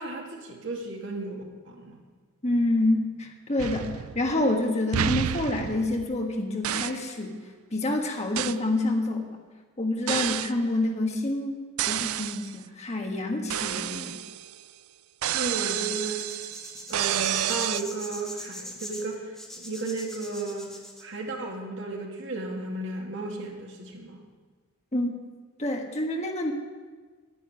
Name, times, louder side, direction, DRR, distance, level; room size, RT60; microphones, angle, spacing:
voice 1, 0.0-2.0 15.3-16.3 16.9-20.7 21.0-24.2, right 2 dB, 60° right, 0 dB, 2.4 m, -34 dB
voice 2, 2.4-7.4 7.7-9.2 9.8-14.2 24.9-25.1 25.6-26.5, left 2 dB, 30° left, 2 dB, 1.6 m, -27 dB
sound 1, 3.6-4.5 4.9-6.3 6.6-7.1 8.4-8.7 10.1-10.6 11.8-12.6 13.5-14.6 15.2-17.8, right 11 dB, 85° right, 0.4 m, -30 dB
sound 2, 15.8-21.0, equal, ahead, 1.7 m, -41 dB
11.0 x 10.0 x 9.6 m, 1.4 s
head